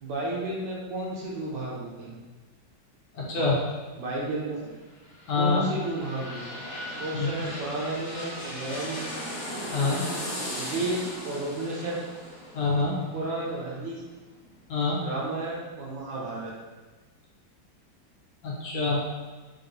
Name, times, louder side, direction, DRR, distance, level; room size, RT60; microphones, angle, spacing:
voice 1, 0.0-2.2 4.0-4.7 5.4-6.4 7.0-9.2 10.6-12.1 13.1-14.0 15.0-16.5, right 2 dB, 70° right, -4 dB, 1.3 m, -32 dB
voice 2, 3.1-3.6 5.3-5.7 7.1-7.3 9.7-10.0 12.5-13.0 14.7-15.0 18.4-19.0, left 3 dB, 70° left, -5 dB, 1.3 m, -25 dB
sound 1, 4.8-14.5 14.9-15.0, equal, 50° left, 0.8 m, -38 dB
4.0 x 2.5 x 2.6 m, 1.3 s
omnidirectional pair, 2.1 m